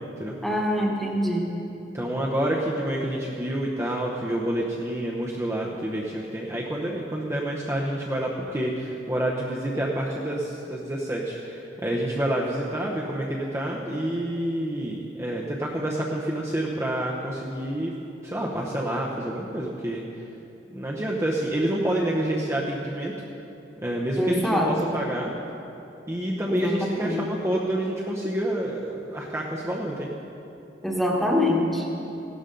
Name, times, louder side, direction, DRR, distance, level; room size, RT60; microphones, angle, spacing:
voice 1, 0.4-1.5 24.2-24.7 26.5-27.2 30.8-31.9, left 1 dB, ahead, -2 dB, 1.4 m, -24 dB
voice 2, 1.9-17.9 18.2-20.3 20.7-23.1 23.8-25.3 26.1-30.1, right 1 dB, 15° right, -4 dB, 0.9 m, -28 dB
16.5 x 12.0 x 3.9 m, 3.0 s
head